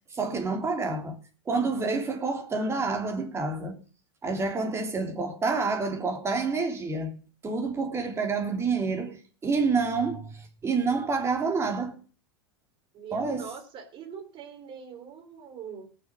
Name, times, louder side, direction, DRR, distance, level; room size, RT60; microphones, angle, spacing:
voice 1, 0.1-1.2 1.5-3.8 4.2-12.0 13.1-13.4, right 4 dB, 20° right, 3.1 m, -28 dB
voice 2, 12.9-15.9, right 7 dB, 40° right, 3.4 m, -42 dB
19.0 x 6.7 x 6.3 m
hypercardioid pair, 110°, 13 cm